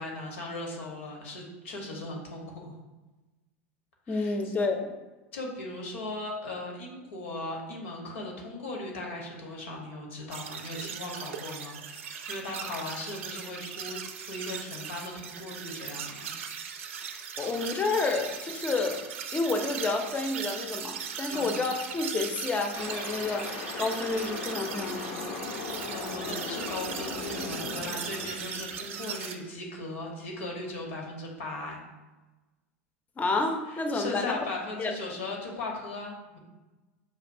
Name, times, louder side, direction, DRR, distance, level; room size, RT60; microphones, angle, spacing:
voice 1, 0.0-2.7 4.1-4.5 5.3-16.3 21.3-21.5 25.9-31.8 33.7-36.4, left 2 dB, 75° left, 0 dB, 1.1 m, -38 dB
voice 2, 4.1-4.9 17.4-19.0 19.3-25.4 33.2-34.4 34.8-34.9, left 3 dB, 20° left, 4 dB, 0.6 m, -30 dB
sound 1, 10.3-29.4, right 7 dB, 80° right, 0.4 m, -39 dB
sound 2, 22.7-29.0, left 4 dB, 60° left, 0.7 m, -38 dB
5.9 x 2.6 x 2.6 m, 1.2 s
hypercardioid pair, 95°, 7 cm